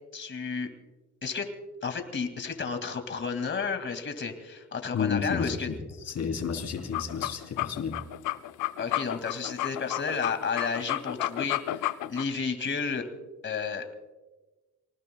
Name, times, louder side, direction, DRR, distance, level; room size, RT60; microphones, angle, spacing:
voice 1, 0.1-0.7 1.2-1.5 1.8-5.7 8.8-13.1 13.4-13.9, left 5 dB, 40° left, 7 dB, 2.3 m, -32 dB
voice 2, 4.9-8.1, left 6 dB, 60° left, 4 dB, 3.5 m, -31 dB
sound 1, 6.8-12.2, left 15 dB, 80° left, 0.6 m, -32 dB
29.0 x 19.5 x 2.3 m, 1.2 s
cardioid pair, 90°, 30 cm